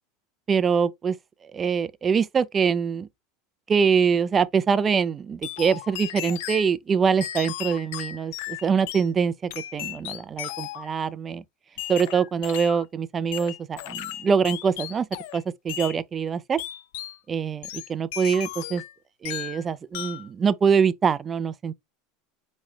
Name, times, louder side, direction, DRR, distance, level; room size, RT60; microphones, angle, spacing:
voice 1, 0.5-1.1 1.5-3.1 3.7-11.4 11.9-15.1 15.3-16.6 17.3-18.8 19.2-21.7, right 6 dB, 25° right, 0.4 m, -24 dB
sound 1, 5.4-6.7 7.2-9.1 9.5-10.9 11.8-12.8 13.3-15.4 15.7-16.0 16.6-17.2 17.6-18.9 19.2-19.6 19.9-20.3, left 13 dB, 75° left, 0.4 m, -35 dB
4.7 x 3.1 x 2.2 m
supercardioid pair, 110°, 0 cm